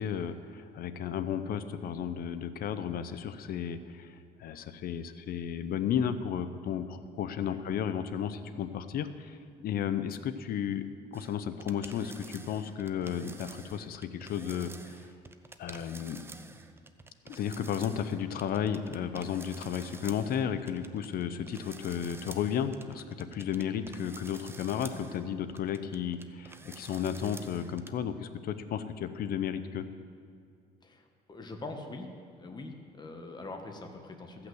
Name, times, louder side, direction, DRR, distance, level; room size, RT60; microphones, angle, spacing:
voice 1, 0.0-9.4 9.6-10.8 11.1-14.7 15.6-16.2 17.3-29.8, left 8 dB, 60° left, 11 dB, 0.8 m, -33 dB
sound 1, 11.1-27.9, right 3 dB, 15° right, 0.6 m, -49 dB
voice 2, 30.8-32.1 32.4-34.5, left 2 dB, 25° left, 4 dB, 1.4 m, -43 dB
15.0 x 5.9 x 7.8 m, 2.2 s
cardioid pair, 110°, 17 cm